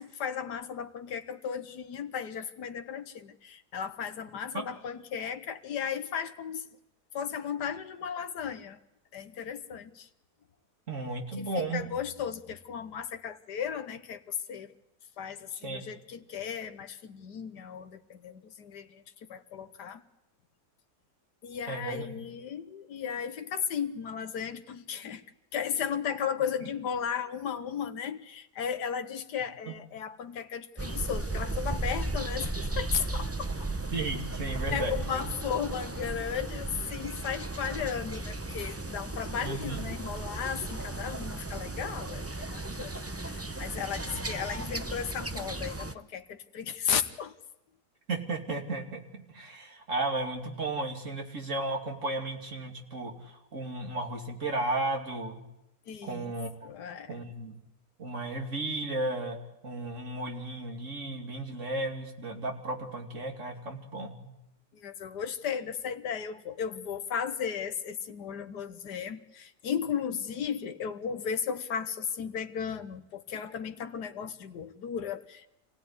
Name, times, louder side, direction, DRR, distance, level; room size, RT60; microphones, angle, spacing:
voice 1, 0.0-6.7 7.1-8.8 9.1-10.1 11.4-14.7 15.2-19.0 19.3-20.0 21.4-25.2 25.5-33.7 34.7-47.3 55.9-56.3 56.6-57.2 64.7-75.5, left 7 dB, 85° left, 9 dB, 1.7 m, -35 dB
voice 2, 10.9-11.9 15.6-15.8 21.7-22.2 29.7-29.8 33.9-35.2 39.4-39.8 44.0-44.2 48.1-55.4 56.0-56.5 57.1-57.6 58.0-59.4 59.6-64.3, right 2 dB, 50° right, 3 dB, 3.1 m, -34 dB
Morgen Hahn Schafe Amsel, 30.8-45.9, right 2 dB, 15° right, 0.5 m, -35 dB
27.0 x 17.0 x 9.7 m, 0.90 s
omnidirectional pair, 1.7 m